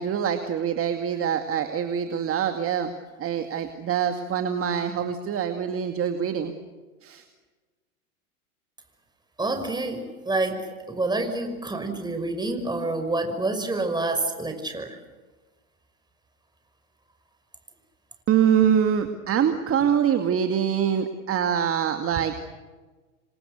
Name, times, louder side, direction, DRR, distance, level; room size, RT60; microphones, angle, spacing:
voice 1, 0.0-2.9 3.2-6.5 7.0-7.2 18.3-22.3, right 8 dB, 30° right, 6 dB, 2.3 m, -24 dB
voice 2, 9.4-15.0, right 2 dB, 10° right, 6 dB, 5.8 m, -28 dB
29.0 x 25.0 x 6.7 m, 1.3 s
hypercardioid pair, 100°, 44 cm